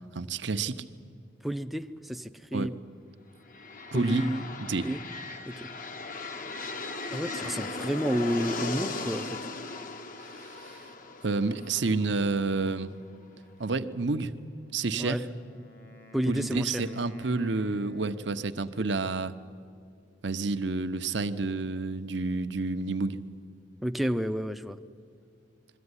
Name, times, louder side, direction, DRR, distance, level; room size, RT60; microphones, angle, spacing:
voice 1, 0.1-0.8 2.5-2.7 3.9-4.3 4.6-4.9 10.3-10.8 11.2-12.9 13.6-14.3 14.7-15.2 16.3-19.3 20.2-23.2, right 3 dB, 65° right, 10 dB, 0.9 m, -29 dB
voice 2, 1.4-2.7 3.9-4.4 4.8-5.0 5.4-5.7 7.1-9.4 15.0-15.2 16.1-16.8 23.8-24.8, equal, ahead, 6 dB, 0.6 m, -30 dB
sound 1, 3.4-13.2, left 3 dB, 45° left, 0.9 m, -38 dB
Wind instrument woodwind instrument, 14.7-18.6, left 3 dB, 60° left, 2.2 m, -53 dB
22.0 x 14.5 x 9.8 m, 2.4 s
head